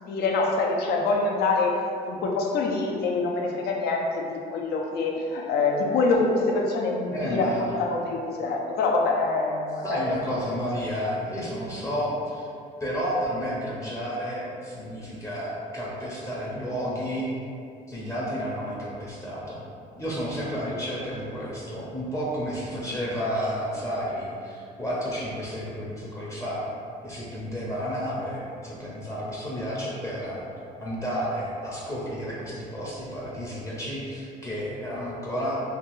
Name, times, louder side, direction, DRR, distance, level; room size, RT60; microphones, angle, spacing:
voice 1, 0.0-1.8 2.0-10.3 10.9-11.0, left 3 dB, 70° left, 0 dB, 0.5 m, -25 dB
voice 2, 7.1-7.8 9.8-12.5 12.8-17.3 17.9-19.6 20.0-26.6 27.0-30.4 30.8-35.6, equal, 20° left, -6 dB, 0.6 m, -31 dB
2.9 x 2.2 x 3.0 m, 2.4 s
cardioid pair, 110°, 17 cm